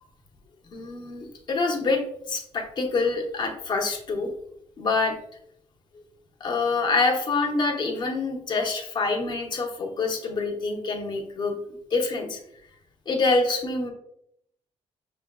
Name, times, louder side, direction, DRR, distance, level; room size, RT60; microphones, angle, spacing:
voice 1, 0.7-2.0 2.3-4.3 4.8-5.2 6.4-11.6 11.9-12.4 13.1-13.9, left 3 dB, 40° left, 1 dB, 0.9 m, -26 dB
6.1 x 3.6 x 2.3 m, 0.76 s
cardioid pair, 165°, 12 cm